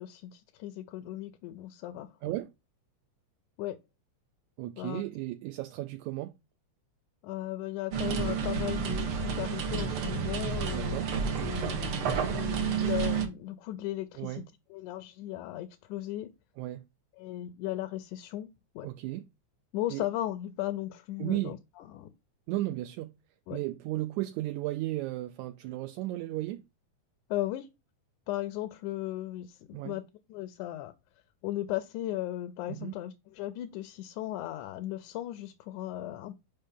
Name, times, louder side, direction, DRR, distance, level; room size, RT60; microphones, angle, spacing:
voice 1, 0.0-2.1 3.6-3.8 4.8-5.0 7.2-11.1 11.4-14.4 14.7-16.3 17.2-18.5 18.8-18.9 19.7-22.1 23.5-23.6 27.3-27.7 28.3-30.9 31.4-36.3, left 14 dB, 90° left, 2.1 m, -36 dB
voice 2, 4.6-6.3 10.7-11.1 14.2-14.5 16.6-16.9 18.8-19.3 19.9-20.1 21.2-21.6 22.5-23.1 23.5-26.6 29.7-30.0 32.7-33.0, right 16 dB, 80° right, 1.9 m, -34 dB
sound 1, 7.9-13.3, right 6 dB, 65° right, 1.5 m, -30 dB
5.5 x 5.2 x 3.6 m
omnidirectional pair, 3.4 m